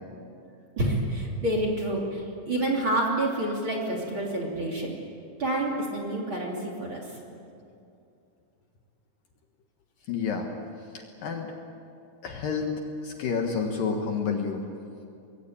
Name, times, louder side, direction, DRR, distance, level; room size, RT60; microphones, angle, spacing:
voice 1, 0.8-4.9 5.4-7.1, right 1 dB, 30° right, 0 dB, 3.1 m, -28 dB
voice 2, 10.1-10.5 10.9-11.5 12.2-14.6, left 5 dB, 60° left, 2 dB, 2.8 m, -29 dB
25.0 x 21.5 x 8.7 m, 2.6 s
omnidirectional pair, 5.1 m